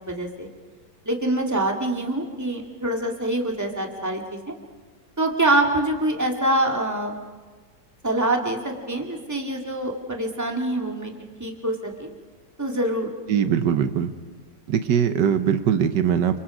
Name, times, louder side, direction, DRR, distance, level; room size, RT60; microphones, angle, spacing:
voice 1, 0.1-0.5 1.1-4.5 5.2-7.1 8.0-11.1 11.4-12.1 12.6-13.1, right 1 dB, 10° right, 1 dB, 2.2 m, -25 dB
voice 2, 13.3-14.1 14.7-16.4, right 8 dB, 80° right, 10 dB, 1.6 m, -21 dB
29.0 x 24.5 x 5.0 m, 1.4 s
omnidirectional pair, 1.8 m